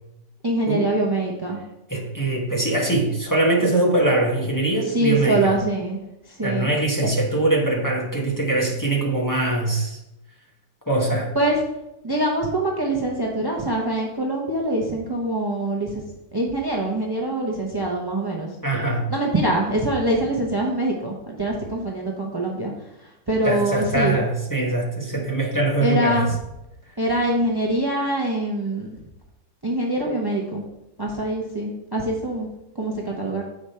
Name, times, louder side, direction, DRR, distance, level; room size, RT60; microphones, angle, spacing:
voice 1, 0.4-1.6 4.8-6.0 6.3-6.7 11.3-11.6 12.0-16.0 16.3-18.5 19.1-22.7 23.3-24.2 25.8-26.3 27.0-28.9 29.6-30.6 31.0-32.5 32.7-33.5, right 1 dB, 35° right, -1 dB, 0.3 m, -24 dB
voice 2, 1.9-5.6 6.4-10.0 10.9-11.3 18.6-19.0 23.4-26.3, right 2 dB, 15° left, -2 dB, 0.9 m, -22 dB
7.8 x 4.9 x 4.3 m, 0.90 s
omnidirectional pair, 2.0 m